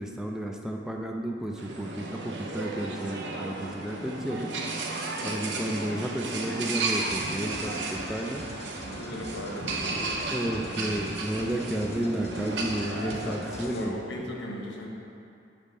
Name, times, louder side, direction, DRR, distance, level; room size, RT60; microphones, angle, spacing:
voice 1, 0.0-4.5 5.2-8.4 10.3-14.3, right 1 dB, 5° right, 1 dB, 0.3 m, -32 dB
sound 1, 1.6-13.7, right 3 dB, 75° right, 0.6 m, -34 dB
voice 2, 5.2-5.6 8.9-10.2 10.4-11.3 12.9-14.9, left 1 dB, 80° left, -1 dB, 1.0 m, -38 dB
sound 2, 7.0-13.8, left 2 dB, 35° left, 0.6 m, -47 dB
5.2 x 5.1 x 5.4 m, 2.5 s
head